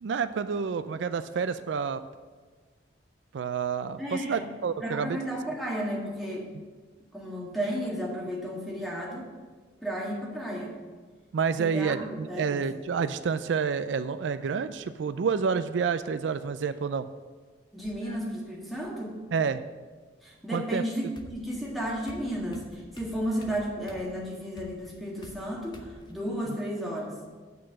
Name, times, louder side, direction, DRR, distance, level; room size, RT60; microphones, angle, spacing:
voice 1, 0.0-2.0 3.3-5.2 11.3-17.1 19.3-19.6 20.5-20.8, right 6 dB, 80° right, 12 dB, 0.4 m, -29 dB
voice 2, 4.0-4.5 4.8-6.5 7.1-9.3 9.8-10.8 11.6-12.7 17.7-19.2 20.2-27.2, equal, ahead, -3 dB, 1.6 m, -33 dB
sound 1, 14.4-15.0 16.3-16.9 17.8-18.9 20.6-20.7 21.2-26.1, left 1 dB, 25° left, 0.7 m, -50 dB
8.3 x 4.6 x 7.4 m, 1.4 s
head